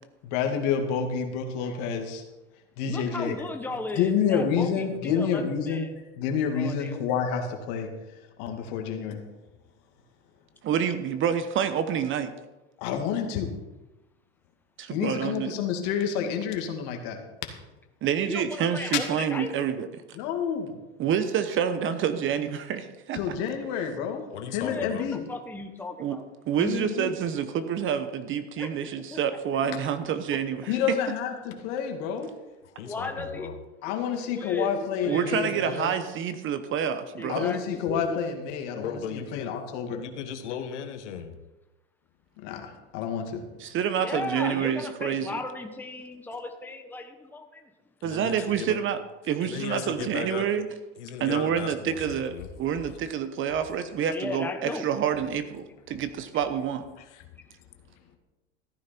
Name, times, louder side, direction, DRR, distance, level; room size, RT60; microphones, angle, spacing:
voice 1, 0.2-2.2 2.8-3.4 3.9-5.9 6.2-7.9 8.4-9.2 12.8-13.6 14.9-17.2 20.1-20.8 23.1-24.2 24.5-25.2 26.6-27.1 30.7-32.4 33.8-35.9 37.3-40.0 42.4-43.5, left 7 dB, 60° left, 4 dB, 2.3 m, -29 dB
voice 2, 2.8-5.9 6.5-7.1 18.3-19.5 24.6-26.3 28.6-29.2 32.8-33.5 34.3-35.9 37.2-38.2 44.0-47.7 48.4-48.5 54.1-54.9, left 3 dB, 5° left, 4 dB, 1.2 m, -36 dB
voice 3, 10.6-12.3 14.8-15.6 18.0-19.9 21.0-23.2 26.0-26.2 26.5-30.8 35.1-37.4 43.6-45.4 48.0-49.0 49.2-50.7 51.2-56.9, right 8 dB, 35° right, 11 dB, 1.0 m, -28 dB
voice 4, 24.3-25.0 32.6-33.5 38.7-39.5 39.9-41.4 48.0-48.8 49.4-50.5 51.0-52.5 57.0-57.2, left 8 dB, 80° left, 6 dB, 1.6 m, -37 dB
14.5 x 9.6 x 4.4 m, 1.1 s
supercardioid pair, 115°, 35 cm